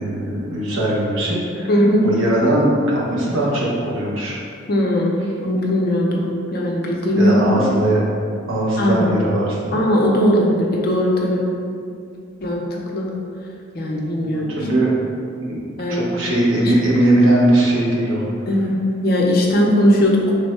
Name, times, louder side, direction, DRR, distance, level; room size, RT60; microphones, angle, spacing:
voice 1, 0.0-1.7 2.0-4.4 7.1-8.0 8.5-9.7 14.2-14.9 15.4-15.6 15.9-18.3, right 1 dB, 80° right, -5 dB, 0.9 m, -19 dB
voice 2, 1.7-2.1 4.7-7.4 8.8-9.1 9.7-11.5 12.4-12.6 12.9-13.1 13.7-14.5 15.8-16.1 16.6-16.7 18.5-18.8 19.0-20.4, equal, 45° left, -1 dB, 0.5 m, -18 dB
3.4 x 2.1 x 4.3 m, 2.3 s
head